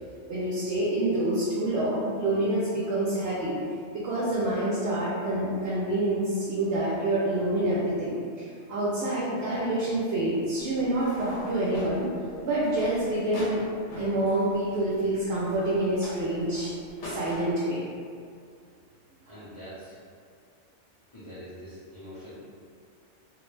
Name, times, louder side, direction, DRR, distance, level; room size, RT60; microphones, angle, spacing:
voice 1, 0.3-3.5 4.0-8.1 8.7-12.1 12.4-13.6 14.0-16.7 17.0-17.8, right 1 dB, 65° right, -8 dB, 0.8 m, -27 dB
sound 1, 10.6-17.5, left 1 dB, 80° left, 0.9 m, -42 dB
voice 2, 19.3-20.0 21.1-22.4, equal, 30° left, -13 dB, 0.7 m, -44 dB
2.4 x 2.0 x 3.1 m, 2.3 s
omnidirectional pair, 1.3 m